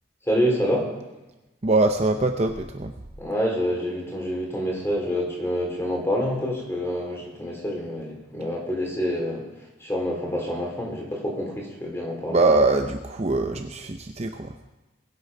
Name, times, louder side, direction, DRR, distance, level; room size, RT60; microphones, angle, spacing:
voice 1, 0.2-0.9 3.2-9.5 9.8-12.4, equal, 15° left, -1 dB, 3.2 m, -27 dB
voice 2, 1.6-2.9 12.3-14.6, right 2 dB, 35° right, 5 dB, 0.6 m, -22 dB
20.5 x 8.3 x 5.4 m, 1.1 s
head